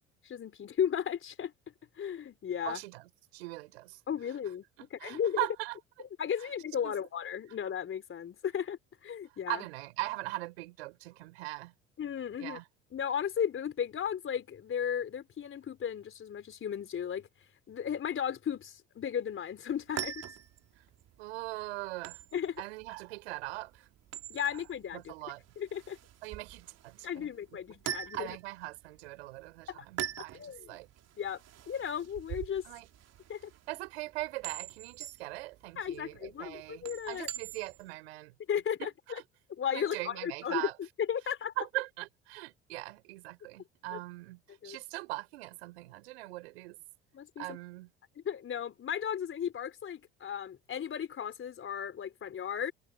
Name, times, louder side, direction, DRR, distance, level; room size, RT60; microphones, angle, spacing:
voice 1, 0.2-1.5 2.0-2.8 4.1-4.6 5.0-5.4 6.2-9.7 12.0-12.6 12.9-17.3 17.7-20.2 22.3-22.6 24.3-25.1 25.6-26.0 27.0-28.4 29.7-29.8 30.3-30.8 31.2-32.6 33.3-33.5 35.8-37.3 38.5-38.9 39.5-40.7 41.1-41.6 43.9-44.0 44.6-44.8 47.1-47.5 48.2-52.7, left 8 dB, 40° left, 4.1 m, -35 dB
voice 2, 2.6-4.0 4.8-5.8 6.4-6.5 6.8-7.0 9.5-11.7 12.4-12.7 20.8-20.9 21.2-22.2 22.6-23.9 24.5-24.6 24.9-25.4 26.2-27.3 28.1-30.9 32.6-32.9 33.7-38.3 38.8-39.2 39.7-40.8 41.6-46.8 47.4-47.9, right 20 dB, 75° right, 5.8 m, -40 dB
sound 1, 19.7-37.9, right 10 dB, 50° right, 4.0 m, -44 dB
hypercardioid pair, 60°, 32 cm